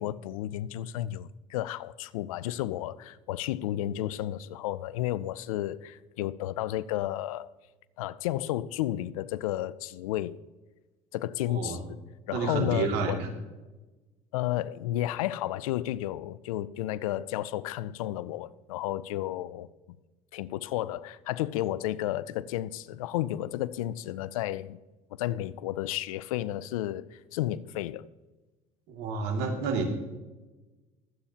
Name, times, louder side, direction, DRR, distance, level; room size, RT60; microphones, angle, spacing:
voice 1, 0.0-7.5 8.0-10.4 11.1-12.0 12.3-13.2 14.3-20.0 20.3-24.8 25.1-28.1, left 14 dB, 85° left, 0.5 m, -32 dB
voice 2, 11.5-11.8 12.3-13.3 28.9-30.0, right 4 dB, 70° right, 2.4 m, -30 dB
22.5 x 8.8 x 2.9 m
hypercardioid pair, 70°, 17 cm